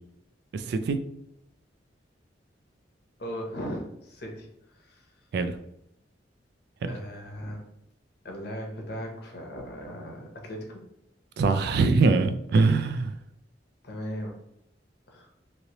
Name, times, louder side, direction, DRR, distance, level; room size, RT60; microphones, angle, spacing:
voice 1, 0.5-1.0 5.3-5.6 6.8-6.9 11.4-13.1, right 3 dB, 60° right, 9 dB, 0.3 m, -23 dB
voice 2, 3.2-5.1 6.9-7.6 8.2-10.8 13.8-14.4 15.1-15.3, equal, 60° left, 1 dB, 0.8 m, -38 dB
3.1 x 2.7 x 2.9 m, 0.79 s
head